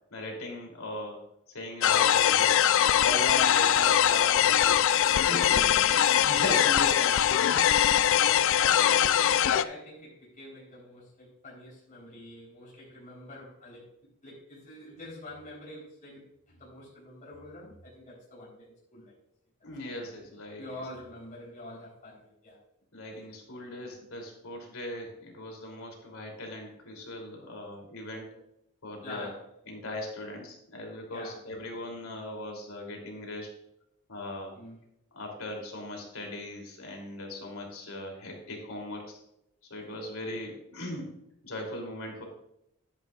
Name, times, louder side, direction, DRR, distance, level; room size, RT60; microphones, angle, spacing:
voice 1, 0.1-2.6 3.0-4.8 5.1-7.8 19.6-20.6 22.9-28.4 28.8-29.3 29.7-33.5 34.1-34.5 35.1-39.2 39.7-42.2, left 1 dB, 90° left, 1 dB, 3.0 m, -39 dB
sound 1, 1.8-9.6, left 10 dB, 65° left, 0.4 m, -22 dB
voice 2, 5.2-6.0 6.2-6.3 7.7-13.9 14.2-19.1 19.9-20.1 20.6-22.6 29.0-29.4 31.1-31.4 34.5-34.8, left 1 dB, 40° left, -5 dB, 3.8 m, -46 dB
11.0 x 10.5 x 2.4 m, 0.79 s
head